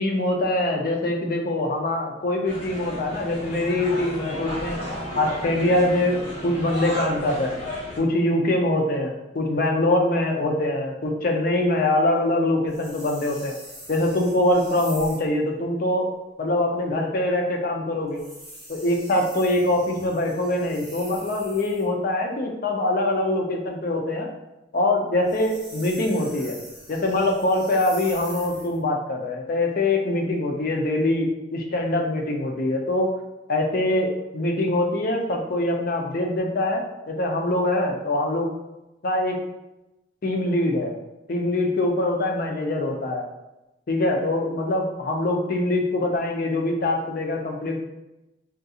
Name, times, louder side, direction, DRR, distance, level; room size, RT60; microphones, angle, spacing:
voice 1, 0.0-4.8 5.2-7.6 8.0-13.5 13.9-16.1 16.4-18.2 18.7-24.3 24.7-26.6 26.9-33.1 33.5-38.5 39.0-39.4 40.2-40.9 41.3-43.2 43.9-47.8, left 1 dB, 50° left, 2 dB, 0.5 m, -23 dB
sound 1, 2.5-8.0, equal, 30° left, 0.9 m, -33 dB
sound 2, 12.7-15.3 18.1-21.9 25.1-28.8, equal, ahead, 1.0 m, -43 dB
3.6 x 2.4 x 2.7 m, 0.96 s
head